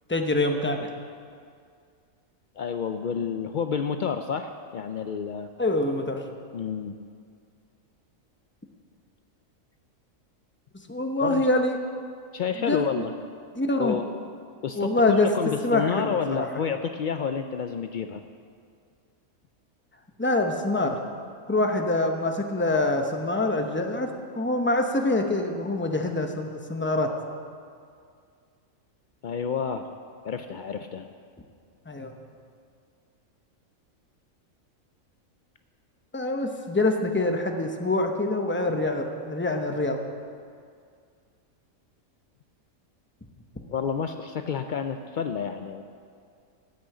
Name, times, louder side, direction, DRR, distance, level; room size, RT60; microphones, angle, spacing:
voice 1, 0.1-0.9 5.6-6.2 10.9-11.8 12.6-13.0 13.5-13.9 14.8-15.3 15.6-16.5 20.2-21.0 21.5-27.1 31.9-32.1 36.1-40.0, left 2 dB, 10° left, 4 dB, 0.7 m, -25 dB
voice 2, 2.6-5.5 6.5-7.0 11.2-11.4 12.3-13.1 13.8-14.1 14.6-18.2 29.2-29.9 30.2-31.1 43.7-45.8, left 6 dB, 85° left, 7 dB, 0.4 m, -29 dB
14.0 x 6.3 x 8.5 m, 2.2 s
omnidirectional pair, 1.4 m